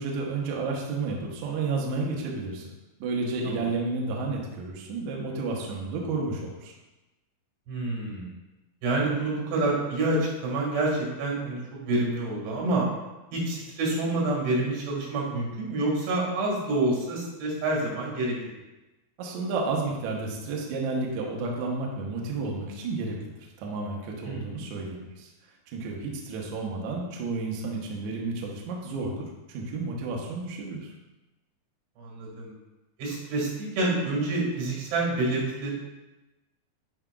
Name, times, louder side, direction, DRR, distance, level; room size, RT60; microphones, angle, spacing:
voice 1, 0.0-2.7 3.0-6.7 19.2-25.3 25.7-30.9, right 3 dB, 70° right, -2 dB, 1.8 m, -31 dB
voice 2, 7.7-8.3 8.8-12.9 13.3-18.4 24.2-24.5 32.0-32.5 33.0-35.7, right 2 dB, 90° right, -2 dB, 4.1 m, -27 dB
9.5 x 4.9 x 2.3 m, 1.0 s
omnidirectional pair, 4.6 m